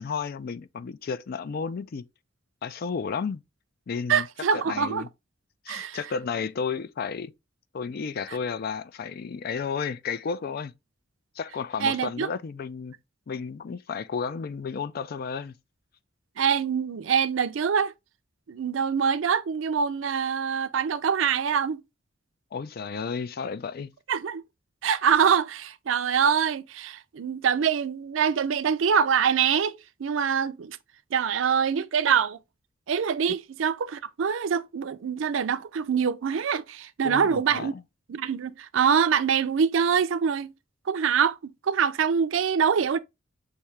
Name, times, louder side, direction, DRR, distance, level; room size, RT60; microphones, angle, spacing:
voice 1, 0.0-2.0 2.6-3.4 3.9-4.3 4.7-5.1 5.7-7.3 7.7-10.7 11.4-13.0 13.3-15.5 22.5-23.9 37.0-37.8, left 5 dB, 50° left, 0.4 m, -32 dB
voice 2, 4.1-5.0 5.7-6.0 11.8-12.3 16.4-17.9 18.5-21.8 24.1-24.4 24.8-30.8 31.1-32.4 32.9-37.7 38.1-40.5 40.9-43.0, right 7 dB, 90° right, 0.4 m, -24 dB
5.8 x 2.7 x 3.2 m
head